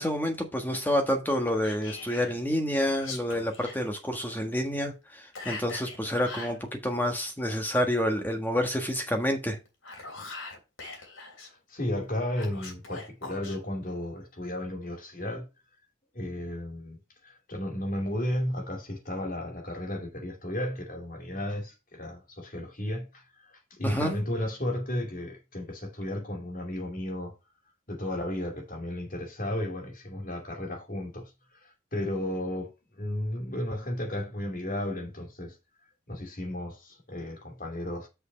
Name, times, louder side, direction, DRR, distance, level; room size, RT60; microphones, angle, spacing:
voice 1, 0.0-9.6 23.8-24.1, equal, 10° left, 1.5 m, -28 dB
Whispering, 1.6-2.3 2.9-3.8 5.3-6.6 9.6-11.5 12.3-13.6, left 3 dB, 80° left, 3.0 m, -41 dB
voice 2, 11.5-15.5 16.1-17.0 17.2-27.3 27.9-32.7 33.0-35.6 36.1-38.1, left 1 dB, 45° left, 2.6 m, -34 dB
6.4 x 5.4 x 5.4 m
head